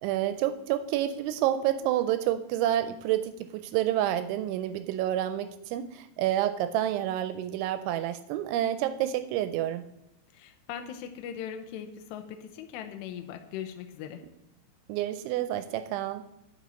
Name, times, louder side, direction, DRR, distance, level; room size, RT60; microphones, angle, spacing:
voice 1, 0.0-9.9 14.9-16.2, right 12 dB, 85° right, 11 dB, 2.8 m, -29 dB
voice 2, 10.3-14.2, left 9 dB, 80° left, 6 dB, 2.5 m, -40 dB
10.0 x 5.3 x 7.5 m, 0.88 s
omnidirectional pair, 5.6 m